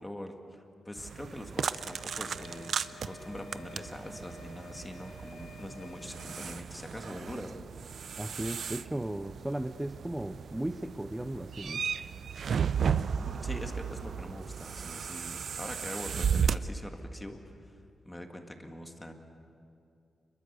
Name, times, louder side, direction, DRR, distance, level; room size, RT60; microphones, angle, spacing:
voice 1, 0.0-7.6 13.1-17.8 18.0-19.1, left 1 dB, 10° left, 4 dB, 1.8 m, -43 dB
sound 1, 1.0-16.6, right 7 dB, 50° right, 0.5 m, -35 dB
sound 2, 1.6-6.6, left 4 dB, 75° left, 2.5 m, -51 dB
voice 2, 8.2-11.9, right 1 dB, 10° right, 9 dB, 0.5 m, -36 dB
28.5 x 22.0 x 6.8 m, 2.5 s
wide cardioid pair, 170°, 0 cm